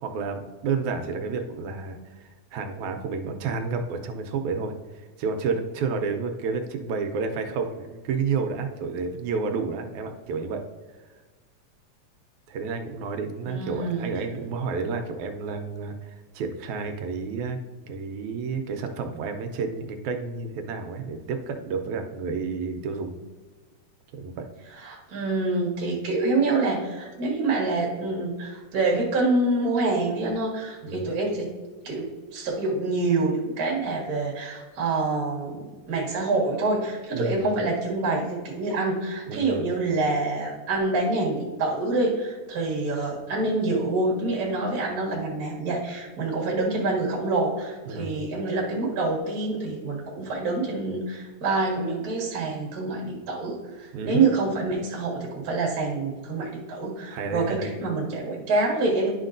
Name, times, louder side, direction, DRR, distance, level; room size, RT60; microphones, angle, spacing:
voice 1, 0.0-10.6 12.5-17.6 17.9-23.2 24.1-24.5 30.8-31.1 37.1-37.4 39.2-39.7 47.8-48.2 53.9-54.3 57.1-57.7, right 4 dB, 80° right, 5 dB, 2.0 m, -30 dB
voice 2, 13.4-14.1 24.8-31.5 31.8-59.1, right 3 dB, 40° right, -3 dB, 1.6 m, -26 dB
10.5 x 5.8 x 2.6 m, 1.3 s
omnidirectional pair, 3.5 m